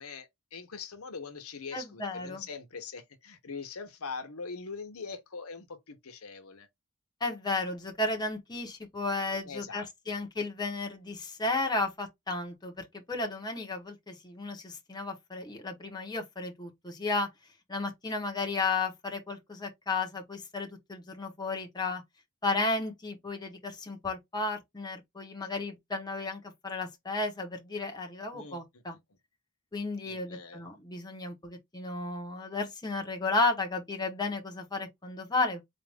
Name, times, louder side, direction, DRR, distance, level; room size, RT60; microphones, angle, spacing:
voice 1, 0.0-6.7 9.4-9.8 28.3-28.6 30.0-30.6, left 5 dB, 85° left, 1.0 m, -42 dB
voice 2, 1.7-2.4 7.2-17.3 17.7-22.0 22.4-29.0 29.7-35.6, left 3 dB, 20° left, 1.0 m, -33 dB
4.1 x 2.6 x 3.4 m
head